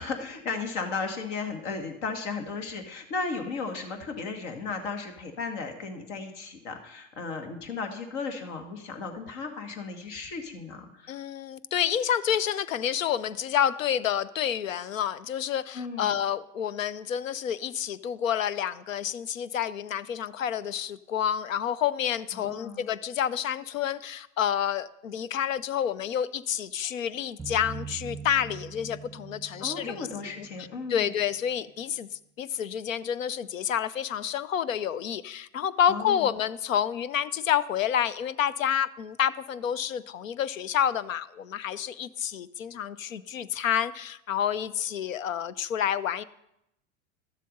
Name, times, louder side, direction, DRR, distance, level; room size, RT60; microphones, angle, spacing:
voice 1, 0.0-11.2 15.7-16.2 22.3-22.9 29.6-31.1 35.9-36.3, left 4 dB, 65° left, 5 dB, 2.0 m, -35 dB
voice 2, 11.1-30.1 30.9-32.1 32.4-46.2, left 9 dB, 90° left, 18 dB, 0.6 m, -29 dB
sound 1, 27.4-31.1, right 6 dB, ahead, 0.9 m, -42 dB
12.5 x 7.5 x 5.3 m, 0.82 s
hypercardioid pair, 90°, 38 cm